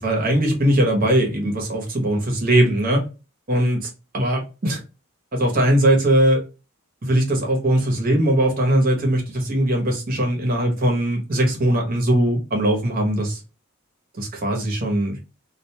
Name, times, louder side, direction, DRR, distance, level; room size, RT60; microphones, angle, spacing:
voice 1, 0.0-3.0 3.5-4.8 5.3-6.4 7.0-13.4 14.2-15.2, right 1 dB, 40° right, 0.9 m, -20 dB
2.4 x 2.2 x 2.8 m
head